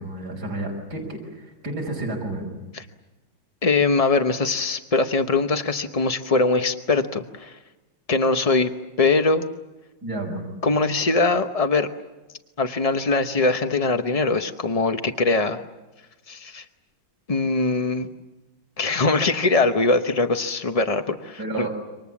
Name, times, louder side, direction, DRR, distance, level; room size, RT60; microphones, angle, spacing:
voice 1, 0.0-2.5 10.0-10.5 21.4-21.7, right 2 dB, 50° right, 0 dB, 5.8 m, -31 dB
voice 2, 3.6-7.6 8.1-8.7 9.0-9.4 10.6-11.9 12.6-15.6 16.3-16.6 17.3-18.1 18.8-21.7, left 3 dB, 40° left, 7 dB, 0.5 m, -22 dB
28.0 x 25.5 x 7.2 m, 1.1 s
omnidirectional pair, 2.2 m